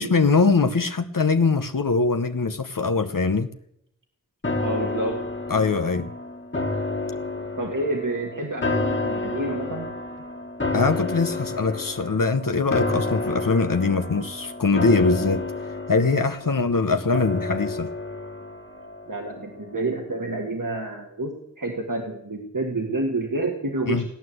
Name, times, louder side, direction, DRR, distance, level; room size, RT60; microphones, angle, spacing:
voice 1, 0.0-3.5 5.5-6.1 10.7-15.5 15.9-17.9 23.9-24.0, left 4 dB, 75° left, 7 dB, 0.9 m, -22 dB
sound 1, 4.4-19.7 20.1-20.2, left 2 dB, 35° left, 1.8 m, -30 dB
voice 2, 4.6-5.2 7.6-9.9 19.1-24.0, right 2 dB, 70° right, 1 dB, 2.0 m, -29 dB
17.5 x 9.7 x 7.9 m, 0.76 s
wide cardioid pair, 45°, 33 cm